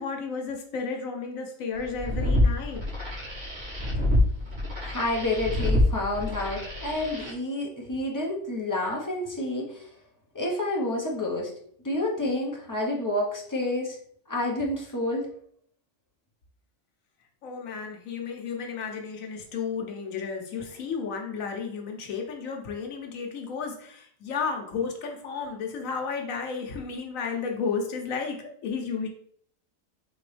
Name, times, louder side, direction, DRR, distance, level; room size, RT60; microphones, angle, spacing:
voice 1, 0.0-2.8 17.4-29.1, left 5 dB, 85° left, 2 dB, 1.2 m, -33 dB
sound 1, 1.8-7.3, left 1 dB, 35° right, 1.4 m, -26 dB
voice 2, 4.8-9.9 10.3-11.5 11.8-14.0 14.3-15.3, left 1 dB, 20° left, -1 dB, 0.6 m, -29 dB
4.2 x 3.0 x 3.2 m, 0.62 s
omnidirectional pair, 1.4 m